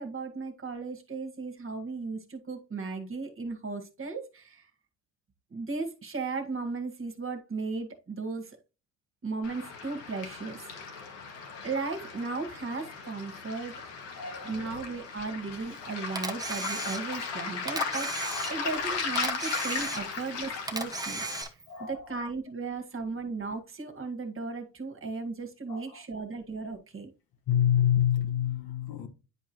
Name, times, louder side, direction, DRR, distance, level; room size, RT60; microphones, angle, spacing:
voice 1, 0.0-4.7 5.5-8.6 9.2-11.0 11.6-13.8 14.4-21.6 21.9-27.1, right 4 dB, 30° right, 1.9 m, -36 dB
Waves surf, 9.4-21.4, left 5 dB, 80° left, 2.1 m, -37 dB
voice 2, 14.1-14.8 18.3-18.6 21.7-22.3 25.7-26.0 27.5-29.1, left 10 dB, 55° left, 1.7 m, -28 dB
Camera, 16.1-17.3 17.7-18.8 19.1-20.3 20.7-21.7, right 2 dB, 10° right, 1.2 m, -35 dB
10.0 x 4.8 x 3.0 m
cardioid pair, 95°, 42 cm